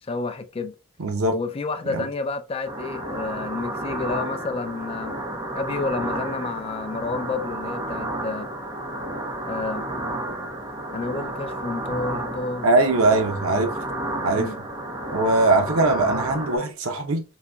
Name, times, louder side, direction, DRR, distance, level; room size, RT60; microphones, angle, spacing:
voice 1, 0.1-0.7 1.3-5.2 5.5-8.5 9.4-9.8 10.9-12.7 14.3-14.6, left 3 dB, 25° left, 0.3 m, -30 dB
voice 2, 1.0-1.4 1.9-2.1 12.6-13.7 14.2-14.5 15.1-17.2, right 2 dB, 90° right, 0.7 m, -21 dB
sound 1, 2.6-16.6, right 1 dB, 20° right, 0.8 m, -31 dB
3.9 x 2.9 x 2.2 m
head